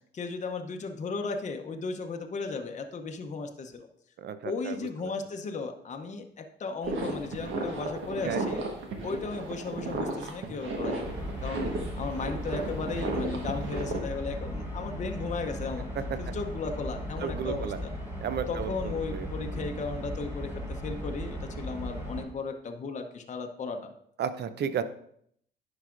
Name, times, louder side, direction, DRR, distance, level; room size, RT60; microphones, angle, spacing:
voice 1, 0.1-3.9 4.4-8.6 9.0-11.1 11.4-11.7 12.0-15.9 16.2-17.9 18.5-23.9, left 4 dB, 35° left, 5 dB, 0.7 m, -35 dB
voice 2, 4.2-4.8 5.0-5.1 8.2-8.5 16.0-16.3 17.2-17.8 18.2-19.3 19.5-19.7 24.2-24.8, right 7 dB, 55° right, 12 dB, 0.6 m, -33 dB
sound 1, 6.8-14.0, right 2 dB, 75° right, 1.3 m, -34 dB
sound 2, 11.0-22.2, equal, 10° right, 2.3 m, -37 dB
10.0 x 4.8 x 2.5 m, 0.67 s
cardioid pair, 90°, 20 cm